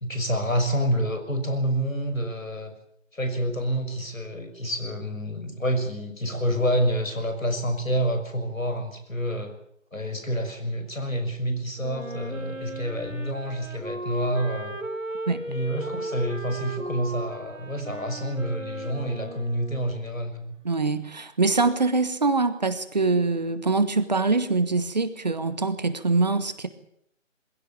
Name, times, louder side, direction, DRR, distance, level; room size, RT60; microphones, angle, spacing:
voice 1, 0.0-2.7 3.1-9.5 9.9-14.8 15.5-20.5, equal, 85° left, 7 dB, 6.3 m, -28 dB
Wind instrument woodwind instrument, 11.8-20.1, right 1 dB, 90° right, 4.1 m, -36 dB
voice 2, 20.6-26.7, right 3 dB, 35° right, 12 dB, 1.3 m, -24 dB
22.0 x 16.0 x 8.8 m, 0.72 s
figure-of-eight pair, 160°, 39 cm